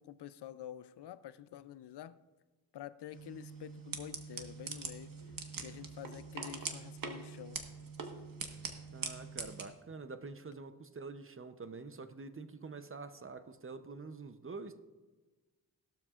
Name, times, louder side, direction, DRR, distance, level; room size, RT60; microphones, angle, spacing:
voice 1, 0.0-2.2 2.7-5.1 5.6-7.6, left 11 dB, 80° left, 0.5 m, -48 dB
sound 1, 3.1-9.6, right 4 dB, 55° right, 1.4 m, -43 dB
voice 2, 8.9-14.8, right 4 dB, 30° right, 0.7 m, -46 dB
16.5 x 12.5 x 2.5 m
wide cardioid pair, 90°, 40 cm